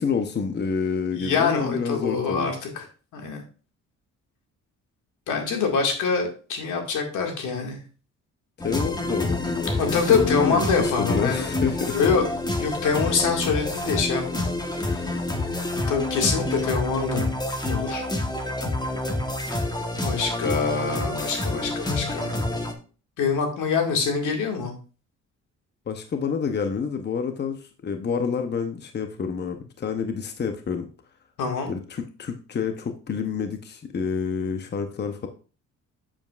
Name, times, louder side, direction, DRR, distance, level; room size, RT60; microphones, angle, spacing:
voice 1, 0.0-2.5 8.6-12.0 25.9-30.9 31.7-35.3, left 6 dB, 35° left, 6 dB, 0.8 m, -28 dB
voice 2, 1.2-2.8 3.1-3.4 5.3-7.8 9.8-11.5 11.9-12.2 12.6-15.1 15.9-17.3 17.7-18.0 19.9-22.3 23.2-24.7 31.4-31.7, left 5 dB, 80° left, 2 dB, 2.1 m, -25 dB
sound 1, 8.6-22.7, left 2 dB, 15° left, 1.2 m, -28 dB
7.6 x 7.2 x 2.5 m, 0.36 s
cardioid pair, 90°, 30 cm